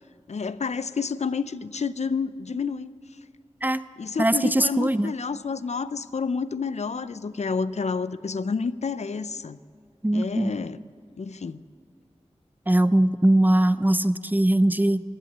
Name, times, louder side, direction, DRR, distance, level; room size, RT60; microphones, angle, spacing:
voice 1, 0.3-2.9 4.0-9.6 10.1-10.8 11.2-11.6, left 5 dB, 70° left, 14 dB, 0.5 m, -29 dB
voice 2, 4.2-5.1 10.0-10.5 12.7-15.0, right 1 dB, 15° right, 13 dB, 0.6 m, -21 dB
16.0 x 10.5 x 7.9 m, 2.3 s
wide cardioid pair, 45°, 12 cm